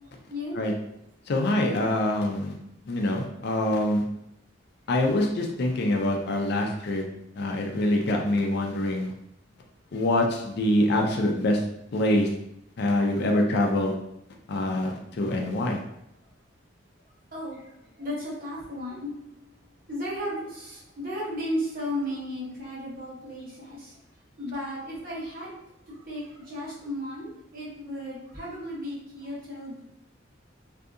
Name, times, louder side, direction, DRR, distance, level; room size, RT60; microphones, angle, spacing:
voice 1, 1.3-2.5 2.9-4.0 4.9-7.0 7.4-9.1 9.9-11.6 11.9-12.3 12.8-14.0 14.5-15.8, left 1 dB, 60° left, 1 dB, 0.4 m, -25 dB
voice 2, 17.3-19.2 19.9-24.0 24.4-25.6 25.9-29.8, equal, 50° right, -7 dB, 1.0 m, -34 dB
2.7 x 2.5 x 2.4 m, 0.78 s
head